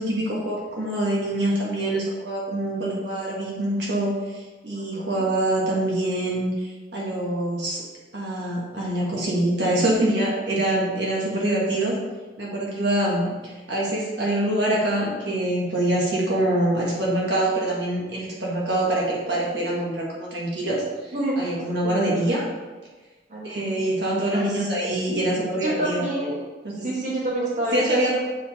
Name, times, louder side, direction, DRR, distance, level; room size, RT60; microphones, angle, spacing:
voice 1, 0.0-7.8 8.1-11.9 12.4-20.8 21.4-22.4 23.4-26.0 26.7-26.8 27.7-28.2, right 1 dB, 75° right, -4 dB, 1.6 m, -25 dB
voice 2, 4.7-5.3 21.1-21.4 21.8-22.2 23.3-23.9 24.3-24.4 25.6-26.4 26.8-28.2, right 1 dB, 40° right, -5 dB, 1.6 m, -28 dB
7.6 x 4.2 x 4.2 m, 1.3 s
head